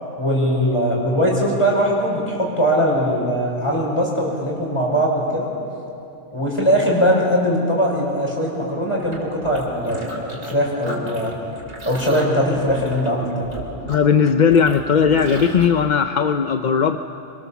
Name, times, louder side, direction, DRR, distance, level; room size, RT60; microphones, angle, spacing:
voice 1, 0.2-5.5 6.3-11.3 11.8-13.4, equal, 20° left, -2 dB, 5.6 m, -20 dB
sound 1, 9.0-10.5 10.8-15.6, equal, 55° right, 3.6 m, -34 dB
voice 2, 13.9-17.0, left 6 dB, 45° left, 7 dB, 0.6 m, -17 dB
25.0 x 23.5 x 7.2 m, 2.7 s
omnidirectional pair, 1.3 m